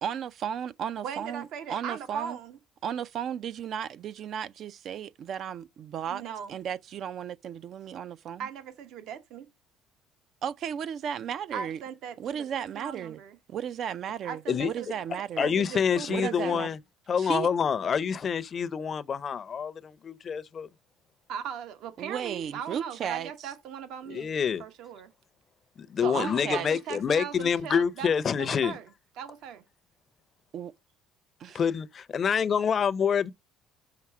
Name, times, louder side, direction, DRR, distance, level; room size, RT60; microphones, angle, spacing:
voice 1, 0.0-2.4 2.8-8.5 10.4-11.8 12.2-13.2 13.5-15.5 16.1-16.7 17.2-17.5 22.0-23.5 26.0-26.7 30.5-30.7 31.4-31.6, right 8 dB, 55° right, 0.4 m, -35 dB
voice 2, 1.0-2.6 6.1-6.5 8.4-9.5 11.5-13.4 14.2-14.9 15.4-16.7 21.3-25.1 26.0-28.9 29.2-29.6, right 8 dB, 70° right, 1.0 m, -39 dB
voice 3, 15.4-16.8 17.1-20.7 24.1-24.6 25.9-28.7 31.5-33.3, left 7 dB, 40° left, 0.5 m, -27 dB
5.8 x 4.1 x 4.7 m
cardioid pair, 100°, 0 cm